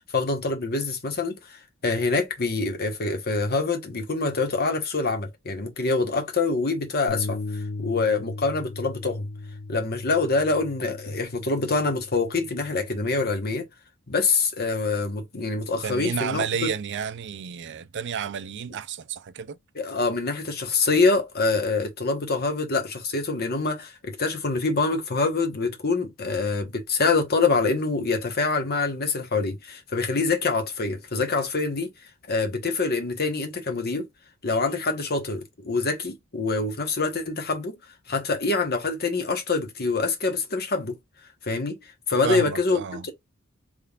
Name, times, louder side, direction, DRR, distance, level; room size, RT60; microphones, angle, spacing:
voice 1, 0.0-9.3 9.7-13.7 14.1-16.7 19.7-31.9 32.3-34.1 34.4-37.8 38.1-41.0 41.4-43.1, left 3 dB, 50° left, 1.1 m, -25 dB
Bass guitar, 7.1-13.3, left 3 dB, 85° left, 0.9 m, -37 dB
voice 2, 15.8-19.6 42.2-43.1, right 7 dB, 55° right, 0.4 m, -31 dB
3.7 x 3.2 x 2.4 m
head